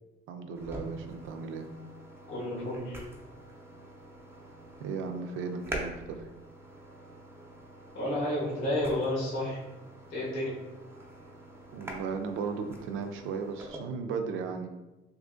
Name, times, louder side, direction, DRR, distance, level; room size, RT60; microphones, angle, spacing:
voice 1, 0.3-1.7 4.8-6.3 11.7-14.7, right 5 dB, 90° right, 6 dB, 0.4 m, -36 dB
sound 1, 0.6-13.8, right 1 dB, 10° right, 0.6 m, -45 dB
voice 2, 2.3-3.0 7.9-9.6 10.1-10.5, left 1 dB, 85° left, -6 dB, 1.2 m, -31 dB
2.7 x 2.5 x 3.6 m, 1.1 s
cardioid pair, 90°, 20 cm